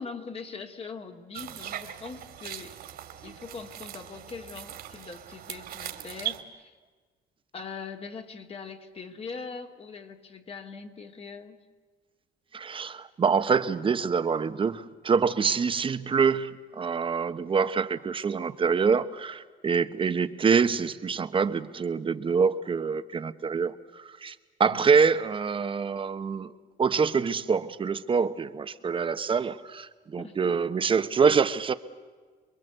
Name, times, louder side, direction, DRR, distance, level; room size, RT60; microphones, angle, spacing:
voice 1, 0.0-2.8 3.2-6.7 7.5-11.6 24.7-25.0 30.2-30.6, left 5 dB, 35° left, 2.3 m, -41 dB
sound 1, 1.3-6.4, right 12 dB, 65° right, 2.5 m, -39 dB
voice 2, 12.5-26.5 26.8-31.7, right 5 dB, 30° right, 1.1 m, -25 dB
27.5 x 22.0 x 8.0 m
cardioid pair, 110°, 17 cm